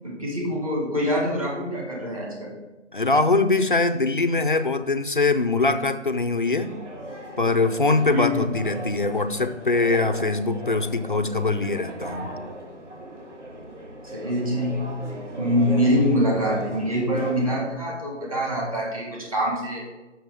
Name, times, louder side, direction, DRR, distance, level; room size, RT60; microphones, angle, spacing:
voice 1, 0.0-2.5 8.1-8.5 14.1-14.9 15.3-19.8, equal, 30° right, -3 dB, 1.8 m, -24 dB
voice 2, 2.9-6.7 7.4-12.3, left 3 dB, 45° left, 10 dB, 0.4 m, -22 dB
sound 1, 6.4-17.5, right 1 dB, 70° right, 1.9 m, -38 dB
6.7 x 6.3 x 4.7 m, 1.1 s
hypercardioid pair, 175°, 37 cm